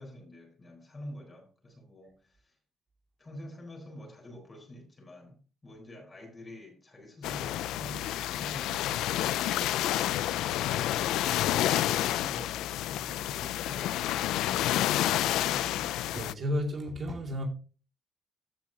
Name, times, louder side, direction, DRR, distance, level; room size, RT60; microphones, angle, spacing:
voice 1, 0.0-2.6 3.2-11.2 11.8-16.1, left 1 dB, 30° left, 4.2 m, -48 dB
sound 1, 7.2-16.3, left 13 dB, 90° left, 0.3 m, -29 dB
voice 2, 16.1-17.4, left 1 dB, 45° right, 2.4 m, -32 dB
15.0 x 6.1 x 2.8 m
cardioid pair, 90°, 0 cm